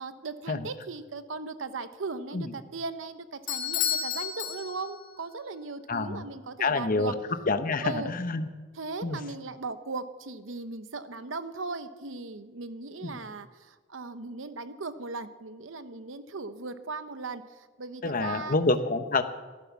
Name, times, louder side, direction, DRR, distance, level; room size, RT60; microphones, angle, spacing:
voice 1, 0.0-7.1 7.8-8.1 8.7-18.6, right 3 dB, 75° right, 11 dB, 0.9 m, -38 dB
Bell / Doorbell, 3.5-5.2, left 9 dB, 60° left, 2.7 m, -31 dB
voice 2, 5.9-6.2 6.6-7.1 7.5-8.5 9.0-9.2 13.0-13.2 18.0-19.2, left 3 dB, 45° left, 9 dB, 0.9 m, -27 dB
15.0 x 11.5 x 7.2 m, 1.3 s
head